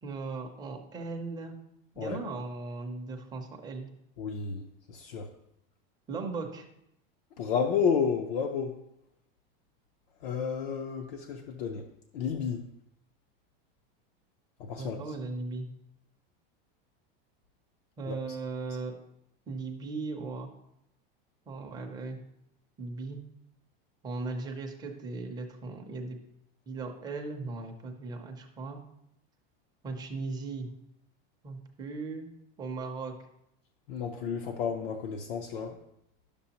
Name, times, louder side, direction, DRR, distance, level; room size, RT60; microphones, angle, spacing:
voice 1, 0.0-1.5 1.9-3.9 6.1-6.7 14.8-15.7 18.0-18.9 19.5-20.5 21.5-22.2 22.8-23.2 24.0-26.2 26.7-28.8 29.8-30.7 31.4-32.3 32.6-33.1, right 3 dB, 15° right, 3 dB, 0.6 m, -37 dB
voice 2, 4.2-5.3 7.4-8.8 10.2-11.8 12.1-12.6 14.6-15.0 18.1-18.4 33.9-35.8, left 6 dB, 70° left, 3 dB, 0.7 m, -31 dB
10.5 x 6.9 x 2.9 m, 0.80 s
supercardioid pair, 175°, 29 cm